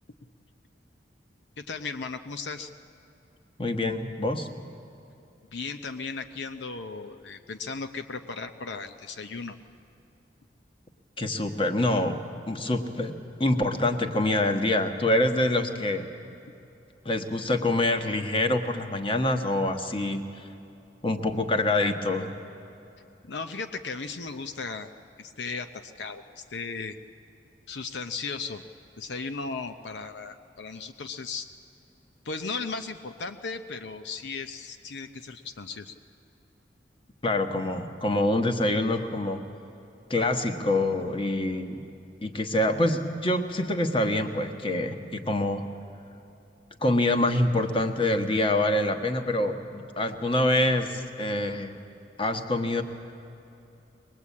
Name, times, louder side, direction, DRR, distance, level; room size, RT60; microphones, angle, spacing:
voice 1, 1.6-2.7 5.5-9.6 23.2-24.9 25.2-27.0 27.7-28.6 29.0-31.5 32.2-35.9, left 4 dB, 75° left, 8 dB, 0.7 m, -36 dB
voice 2, 3.6-4.5 11.2-12.2 12.5-16.1 17.0-20.4 21.0-22.3 37.2-39.4 40.1-41.8 42.2-45.6 46.8-51.7 52.2-52.8, left 1 dB, 30° left, 6 dB, 1.3 m, -26 dB
23.0 x 20.0 x 8.5 m, 2.8 s
head